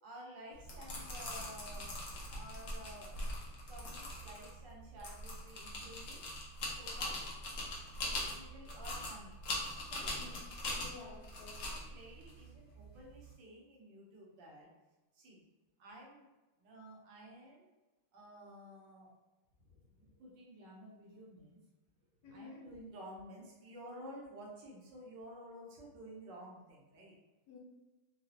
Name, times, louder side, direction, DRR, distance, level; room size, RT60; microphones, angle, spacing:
voice 1, 0.0-2.0 2.3-3.4 3.7-6.3 6.6-7.2 8.2-9.3 9.9-10.2 11.6-14.7 15.1-15.4 15.8-16.2 16.6-17.7 18.1-19.2 19.6-21.6 22.2-27.1, equal, 65° right, -3 dB, 1.4 m, -52 dB
sound 1, 0.5-13.3, left 1 dB, 80° left, 0.6 m, -42 dB
voice 2, 10.1-10.4 10.7-11.6 22.2-22.6 27.5-27.6, left 3 dB, 60° left, -3 dB, 1.3 m, -52 dB
3.9 x 2.3 x 2.7 m, 1.1 s
omnidirectional pair, 2.2 m